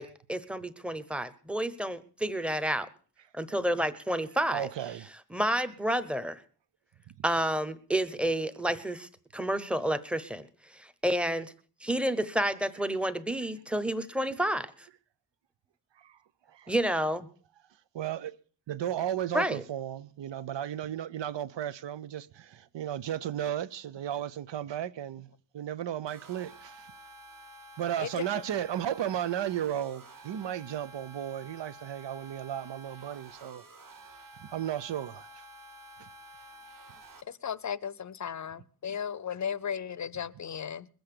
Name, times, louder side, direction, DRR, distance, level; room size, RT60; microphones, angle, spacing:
voice 1, 0.0-2.9 3.3-4.7 5.3-6.4 7.2-10.4 10.7-11.5 11.8-14.7 16.7-17.3 19.3-19.6, right 1 dB, 5° right, 0.8 m, -30 dB
voice 2, 4.5-5.1 7.1-7.2 16.0-16.2 16.5-16.8 17.9-18.4 18.7-25.3 25.5-26.9 27.8-33.6 34.4-35.5, right 10 dB, 90° right, 0.8 m, -34 dB
sound 1, 26.1-37.2, right 1 dB, 50° right, 1.8 m, -51 dB
voice 3, 37.3-40.9, left 8 dB, 45° left, 0.6 m, -35 dB
21.0 x 7.9 x 6.7 m
wide cardioid pair, 170°, 42 cm